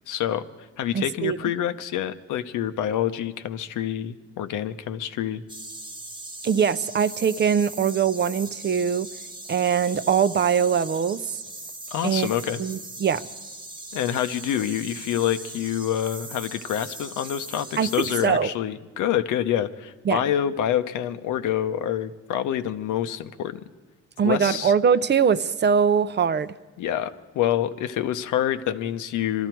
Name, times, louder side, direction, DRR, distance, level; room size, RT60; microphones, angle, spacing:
voice 1, 0.1-0.5 0.8-5.4 11.9-12.6 13.9-23.6 24.2-24.7 26.8-29.5, left 10 dB, 85° left, 10 dB, 0.8 m, -27 dB
voice 2, 0.9-1.4 6.4-9.1 9.5-11.2 12.0-12.3 12.6-13.2 17.8-18.5 20.1-20.2 24.2-26.5, right 7 dB, 35° right, 14 dB, 0.5 m, -22 dB
sound 1, 5.5-18.3, right 2 dB, 15° right, 1.2 m, -40 dB
23.0 x 13.0 x 4.6 m, 1.2 s
cardioid pair, 90°, 30 cm